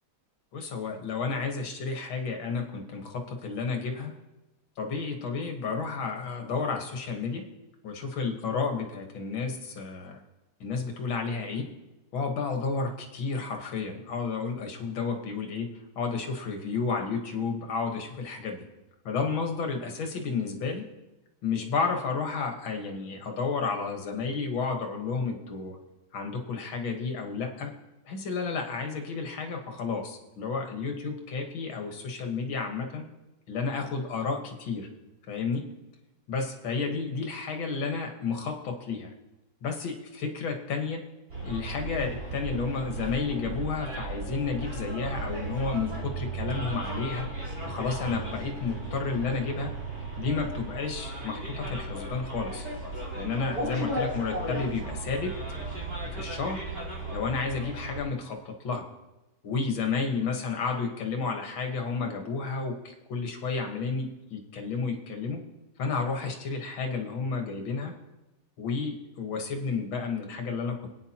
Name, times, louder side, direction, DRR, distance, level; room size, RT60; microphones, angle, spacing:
voice 1, 0.5-4.1 4.8-7.4 7.8-10.2 10.6-11.7 12.1-15.7 16.0-18.7 19.1-20.8 21.4-25.8 26.1-27.7 28.1-33.1 33.5-34.9 35.3-35.7 36.3-39.1 39.6-41.0 41.4-47.3 47.6-49.7 50.2-52.6 53.1-55.3 56.1-56.6 57.1-58.9 59.4-65.4 65.8-67.9 68.6-70.9, left 4 dB, 75° left, 3 dB, 2.2 m, -31 dB
Bus, 41.3-58.0, right 2 dB, 55° right, 4.7 m, -35 dB
26.0 x 9.3 x 2.9 m, 1.0 s
omnidirectional pair, 2.2 m